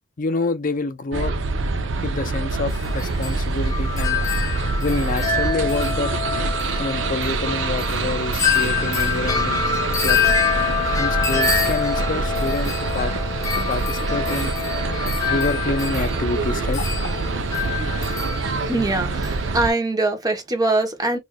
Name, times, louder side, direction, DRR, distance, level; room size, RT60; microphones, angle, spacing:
voice 1, 0.2-1.3 2.0-4.2 4.8-6.1 6.8-9.6 10.0-10.3 11.0-13.1 13.5-14.6 15.3-16.9, left 3 dB, 45° left, 0.5 m, -27 dB
sound 1, 1.1-19.7, right 3 dB, 70° right, 0.6 m, -25 dB
Wind chime, 2.7-19.5, left 6 dB, 15° left, 0.9 m, -26 dB
voice 2, 18.6-21.2, right 2 dB, 20° right, 0.9 m, -22 dB
4.6 x 2.5 x 2.2 m
head